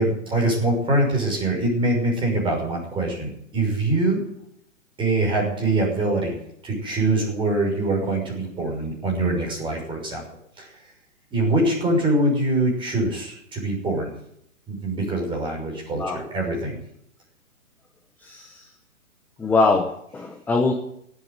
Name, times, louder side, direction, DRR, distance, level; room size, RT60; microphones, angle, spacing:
voice 1, 0.0-4.2 5.0-6.3 6.6-10.2 10.6-10.7 11.3-14.1 14.7-16.8, right 2 dB, 10° right, -1 dB, 6.1 m, -23 dB
voice 2, 18.2-18.6 19.4-20.7, left 3 dB, 5° left, 3 dB, 0.9 m, -22 dB
17.5 x 8.3 x 9.7 m, 0.74 s
figure-of-eight pair, 125°, 40 cm